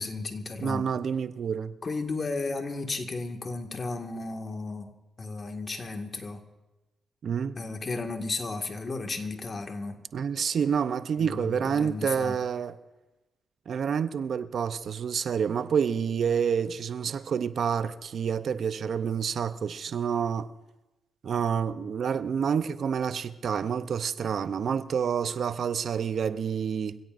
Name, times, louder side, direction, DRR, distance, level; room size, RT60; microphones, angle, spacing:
voice 1, 0.0-0.9 1.8-4.9 5.2-6.4 7.6-10.0 11.2-12.4, left 3 dB, 40° left, 1.9 m, -34 dB
voice 2, 0.6-1.8 7.2-7.6 10.1-12.8 13.7-20.5 21.2-27.0, right 7 dB, 60° right, 0.6 m, -28 dB
25.5 x 16.5 x 2.6 m
supercardioid pair, 60°, 0 cm